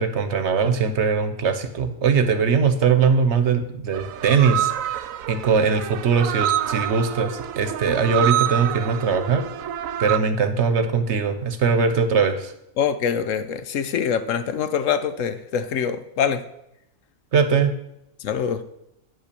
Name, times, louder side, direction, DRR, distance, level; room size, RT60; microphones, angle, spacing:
voice 1, 0.0-9.4 10.0-12.5 17.3-17.7, right 5 dB, 60° right, 1.1 m, -21 dB
sound 1, 3.9-10.2, right 11 dB, 85° right, 1.0 m, -27 dB
voice 2, 12.8-16.4 18.2-18.6, left 7 dB, 75° left, 1.1 m, -24 dB
9.7 x 5.6 x 6.8 m
omnidirectional pair, 1.4 m